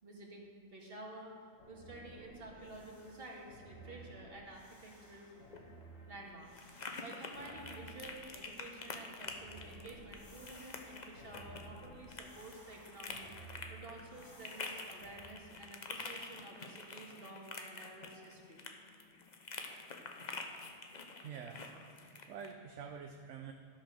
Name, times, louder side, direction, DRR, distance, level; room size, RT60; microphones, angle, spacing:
voice 1, 0.0-1.3 1.7-5.3 6.1-6.7 7.0-13.3 13.7-18.6, right 2 dB, 45° right, -1 dB, 2.0 m, -51 dB
sound 1, 1.6-15.2, right 1 dB, 70° left, 2.3 m, -56 dB
sound 2, 5.4-22.5, left 3 dB, 40° left, 0.8 m, -48 dB
voice 2, 21.0-21.6 22.0-23.5, right 7 dB, 70° right, 4 dB, 1.0 m, -47 dB
13.0 x 5.9 x 6.4 m, 2.5 s
omnidirectional pair, 1.4 m